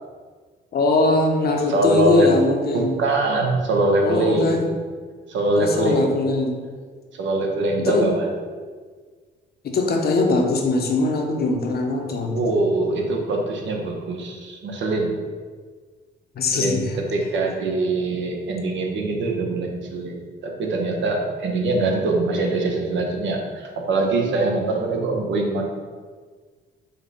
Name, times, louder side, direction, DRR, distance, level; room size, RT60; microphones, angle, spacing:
voice 1, 0.7-3.0 4.0-4.6 5.6-6.6 7.8-8.1 9.6-12.4 16.4-17.0, left 2 dB, 50° left, 2 dB, 0.7 m, -21 dB
voice 2, 1.7-2.3 2.7-4.6 5.3-6.1 7.1-8.3 12.3-15.1 16.5-25.6, right 2 dB, 70° right, 1 dB, 0.8 m, -23 dB
5.1 x 2.2 x 4.0 m, 1.5 s
cardioid pair, 90°, 20 cm